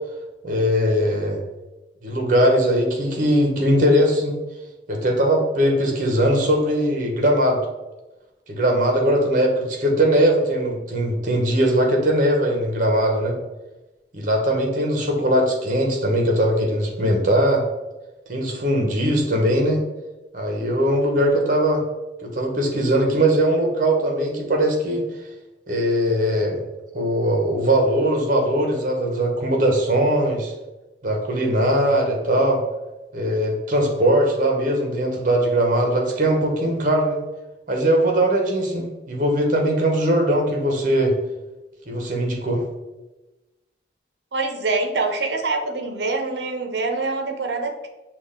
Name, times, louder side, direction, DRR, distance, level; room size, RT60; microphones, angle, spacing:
voice 1, 0.4-1.4 2.0-4.3 4.9-7.6 8.5-13.4 14.1-17.6 18.3-19.8 20.3-21.8 22.2-25.1 25.7-26.6 26.9-30.5 31.0-32.6 33.1-37.2 37.7-41.1 41.9-42.6, right 1 dB, 45° right, 2 dB, 0.9 m, -20 dB
voice 2, 44.3-47.9, right 3 dB, 75° right, 4 dB, 0.7 m, -25 dB
6.1 x 2.4 x 3.6 m, 1.0 s
head